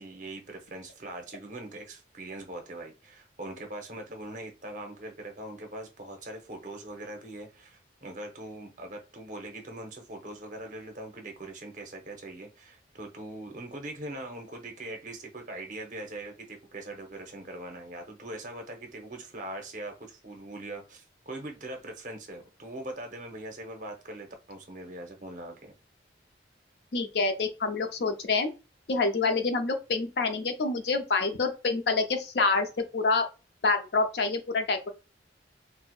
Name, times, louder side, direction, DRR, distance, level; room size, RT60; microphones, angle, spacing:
voice 1, 0.0-25.7, right 1 dB, 45° right, 0.8 m, -41 dB
voice 2, 26.9-28.5 28.9-33.3 33.6-34.9, left 3 dB, 65° left, 0.5 m, -27 dB
4.4 x 2.1 x 2.3 m
head